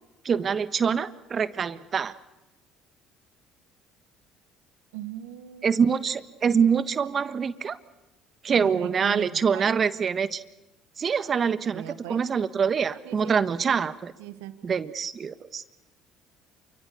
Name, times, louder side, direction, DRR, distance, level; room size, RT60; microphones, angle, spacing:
voice 1, 0.2-2.1 5.6-7.8 8.4-10.4 11.0-11.8 12.1-14.1 14.6-15.6, right 6 dB, 40° right, 13 dB, 1.5 m, -25 dB
voice 2, 4.9-6.0 8.5-9.8 11.7-12.2 13.0-13.8 14.2-14.6, right 12 dB, 85° right, 11 dB, 1.7 m, -39 dB
28.5 x 25.0 x 7.0 m, 0.96 s
hypercardioid pair, 70°, 0 cm